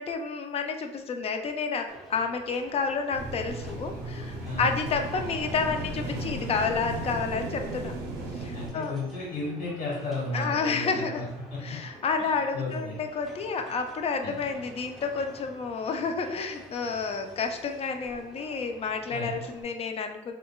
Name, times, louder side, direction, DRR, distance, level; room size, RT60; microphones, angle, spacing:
voice 1, 0.0-7.9 8.3-8.9 10.3-11.3 11.6-20.3, left 5 dB, 35° left, 6 dB, 0.4 m, -30 dB
sound 1, 1.9-19.6, right 1 dB, ahead, 0.7 m, -49 dB
sound 2, 3.1-8.7, right 1 dB, 80° right, 0.5 m, -35 dB
voice 2, 8.5-11.2 11.5-11.8 12.2-13.0 14.2-14.3 19.1-19.4, left 2 dB, 65° left, -5 dB, 1.4 m, -34 dB
3.6 x 2.2 x 2.3 m, 0.91 s
cardioid pair, 110°, 17 cm